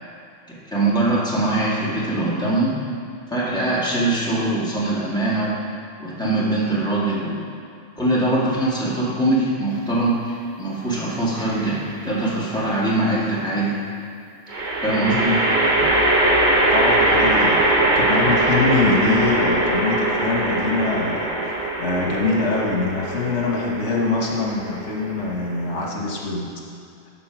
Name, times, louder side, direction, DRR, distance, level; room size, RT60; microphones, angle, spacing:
voice 1, 0.5-2.8 3.3-5.6 6.0-7.5 8.0-13.8 14.8-15.3, right 2 dB, 5° left, -7 dB, 1.8 m, -22 dB
sound 1, 11.4-12.0 14.5-25.8, right 1 dB, 45° right, 1.2 m, -21 dB
voice 2, 15.1-15.4 15.8-15.9 16.7-26.5, left 3 dB, 85° left, -2 dB, 1.5 m, -24 dB
12.0 x 4.3 x 5.9 m, 2.4 s
omnidirectional pair, 1.2 m